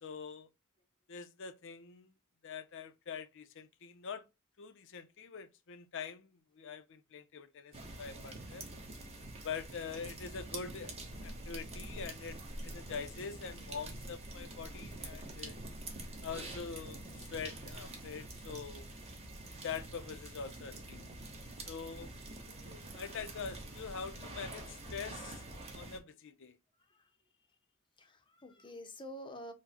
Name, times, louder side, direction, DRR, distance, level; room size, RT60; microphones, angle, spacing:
voice 1, 0.0-0.5 1.1-2.1 2.4-4.2 4.6-8.6 9.4-15.6 16.2-18.9 19.6-21.0 21.7-22.1 22.9-25.4 25.7-26.6, left 6 dB, 65° left, 0.6 m, -44 dB
sound 1, 7.7-26.0, right 2 dB, 30° right, 1.1 m, -46 dB
voice 2, 26.7-27.2 28.0-29.5, equal, 25° left, 0.7 m, -49 dB
4.6 x 2.2 x 4.2 m
head